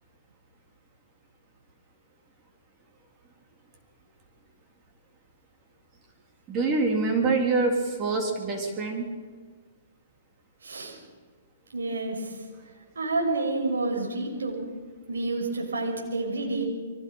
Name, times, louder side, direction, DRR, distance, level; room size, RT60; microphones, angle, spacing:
voice 1, 6.5-9.1, right 3 dB, 25° right, 1 dB, 3.7 m, -25 dB
voice 2, 10.6-11.0 11.7-12.4 13.0-14.7 15.1-16.6, right 2 dB, 90° right, 0 dB, 5.9 m, -29 dB
24.0 x 19.0 x 5.7 m, 1.4 s
hypercardioid pair, 145°, 0 cm